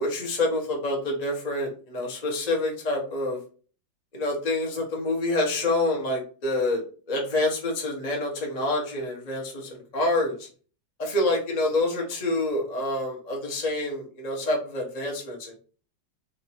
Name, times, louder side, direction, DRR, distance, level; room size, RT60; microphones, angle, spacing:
voice 1, 0.0-3.4 4.1-10.5 11.0-15.6, left 2 dB, 40° left, 0 dB, 0.6 m, -27 dB
3.0 x 2.5 x 4.1 m, 0.39 s
omnidirectional pair, 2.0 m